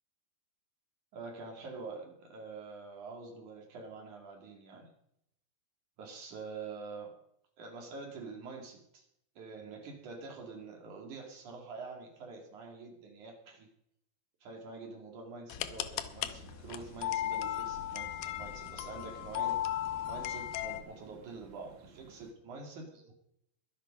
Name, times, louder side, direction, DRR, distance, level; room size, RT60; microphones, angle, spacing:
voice 1, 1.1-4.9 6.0-7.1 7.6-9.1 9.4-13.7 14.4-23.1, right 4 dB, 55° right, 2 dB, 3.6 m, -46 dB
sound 1, 15.5-20.8, left 12 dB, 80° left, 2.5 m, -36 dB
sound 2, 16.3-22.3, right 5 dB, 90° right, 3.7 m, -58 dB
22.0 x 7.9 x 5.3 m, 0.74 s
omnidirectional pair, 4.4 m